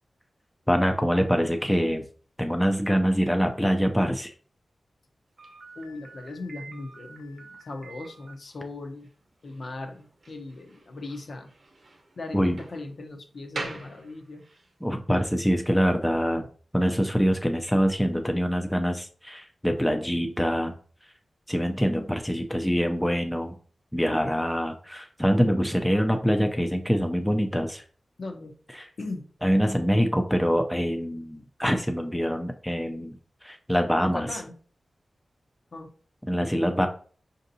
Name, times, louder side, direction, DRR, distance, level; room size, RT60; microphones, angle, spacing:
voice 1, 0.7-2.1 2.4-4.3 12.3-12.6 14.8-16.5 16.7-20.7 21.5-23.5 23.9-27.8 28.8-28.9 29.4-33.2 33.4-34.3 36.3-36.9, equal, 5° left, 5 dB, 0.4 m, -24 dB
Slam, 5.4-14.7, right 2 dB, 55° right, 0.7 m, -44 dB
voice 2, 5.7-9.1 9.4-11.5 12.2-14.4 28.2-28.5 29.0-29.3 34.0-34.5 35.7-35.9, left 2 dB, 60° left, 4 dB, 0.6 m, -38 dB
5.0 x 2.7 x 2.6 m, 0.44 s
wide cardioid pair, 110°, 0 cm